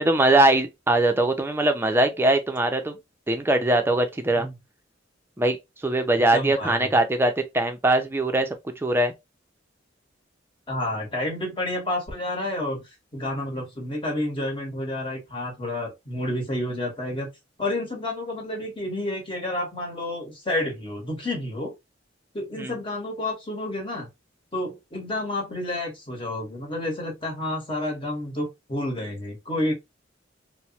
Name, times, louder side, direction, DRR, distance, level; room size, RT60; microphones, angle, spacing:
voice 1, 0.0-3.0 3.3-4.5 5.4-5.6 5.8-8.5 8.8-9.1 22.6-22.7, right 2 dB, 10° right, 0.4 m, -21 dB
voice 2, 6.3-6.9 10.7-12.8 13.1-17.3 17.6-21.7 22.3-24.1 24.5-29.7, left 1 dB, 25° left, 1.0 m, -30 dB
3.0 x 2.0 x 2.7 m
head